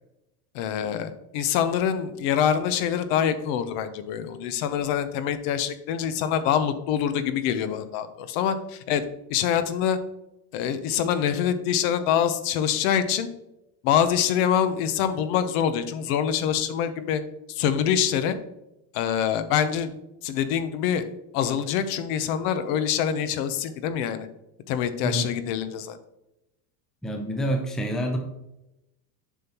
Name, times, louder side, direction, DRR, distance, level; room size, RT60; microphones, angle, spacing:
voice 1, 0.5-9.0 9.3-10.0 10.5-13.3 13.8-17.2 17.5-18.4 18.9-19.9 20.2-21.0 21.3-24.3 24.7-26.0, left 9 dB, 55° left, 11 dB, 0.8 m, -25 dB
voice 2, 27.0-28.2, equal, ahead, 3 dB, 0.5 m, -27 dB
7.2 x 5.5 x 2.9 m, 0.90 s
supercardioid pair, 140°, 48 cm